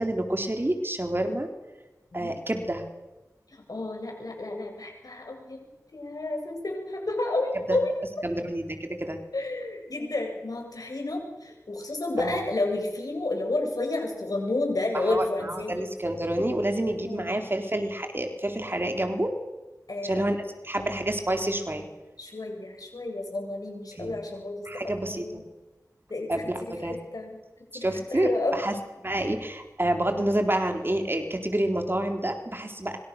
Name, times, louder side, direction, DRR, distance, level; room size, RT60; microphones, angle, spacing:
voice 1, 0.0-1.5 2.1-2.9 7.7-7.8 8.2-9.2 12.2-12.5 14.9-19.3 20.0-21.9 24.0-24.2 24.7-25.4 26.3-27.0 27.7-28.7 29.0-33.0, right 1 dB, 35° right, 4 dB, 4.1 m, -28 dB
voice 2, 3.7-5.6 5.9-7.9 9.3-15.8 16.8-17.5 19.9-20.2 20.8-20.9 22.2-25.4 26.1-27.4 27.7-28.5, left 2 dB, 75° left, 2 dB, 7.9 m, -31 dB
26.0 x 25.5 x 6.8 m, 1.1 s
wide cardioid pair, 40°, 6 cm